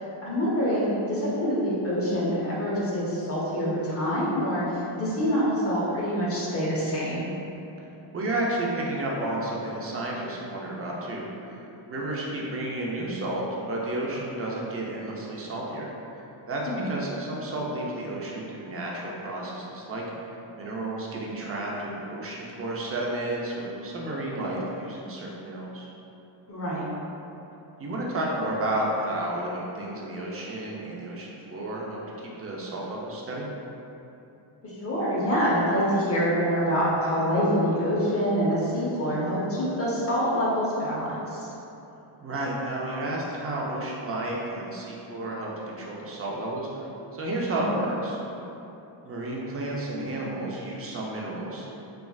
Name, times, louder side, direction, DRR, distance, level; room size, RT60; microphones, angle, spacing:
voice 1, 0.2-7.3 16.7-16.9 26.5-26.8 34.6-41.5 47.5-47.6, equal, 30° left, -7 dB, 0.8 m, -26 dB
voice 2, 8.1-11.6 11.9-15.9 16.5-20.0 20.6-25.9 27.8-33.5 42.2-48.2 49.0-51.7, right 1 dB, 30° right, -3 dB, 0.5 m, -32 dB
3.2 x 2.4 x 2.3 m, 2.9 s
cardioid pair, 100°, 49 cm